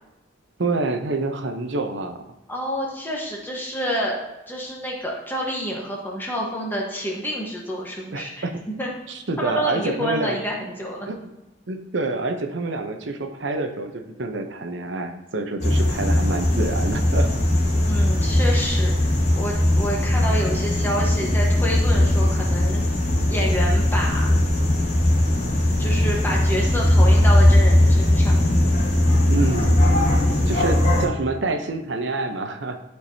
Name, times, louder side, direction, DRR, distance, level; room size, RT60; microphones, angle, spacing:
voice 1, 0.6-2.2 8.1-8.5 9.1-10.4 11.1-11.3 11.7-17.3 17.7-17.8 29.3-29.8 30.5-32.8, right 2 dB, 75° right, 6 dB, 0.8 m, -27 dB
voice 2, 2.5-4.2 4.5-8.5 8.8-8.9 9.4-11.1 17.9-22.9 23.3-24.3 25.8-28.3, equal, 10° left, -2 dB, 1.2 m, -28 dB
sound 1, 15.6-31.0, left 1 dB, 40° left, 1.4 m, -19 dB
11.5 x 4.6 x 2.8 m, 0.99 s
head